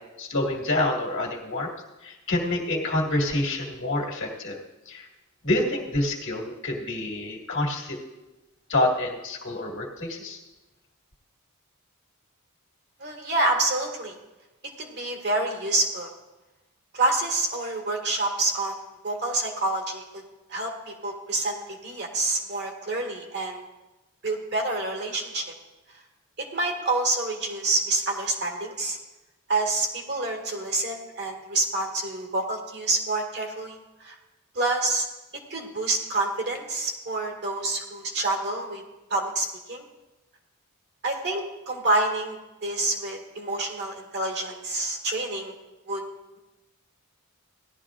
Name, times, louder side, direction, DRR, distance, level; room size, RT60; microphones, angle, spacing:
voice 1, 0.2-1.7 2.0-4.6 4.9-5.1 5.4-8.0 8.7-10.4, left 1 dB, 55° left, -1 dB, 2.0 m, -27 dB
voice 2, 13.0-14.2 14.8-16.1 16.9-20.2 20.5-23.6 24.2-25.4 26.4-29.0 29.5-34.2 34.5-35.1 35.5-38.8 39.1-39.8 41.0-45.5 45.9-46.0, right 2 dB, 50° right, 1 dB, 1.9 m, -27 dB
17.0 x 12.0 x 2.5 m, 1.1 s
head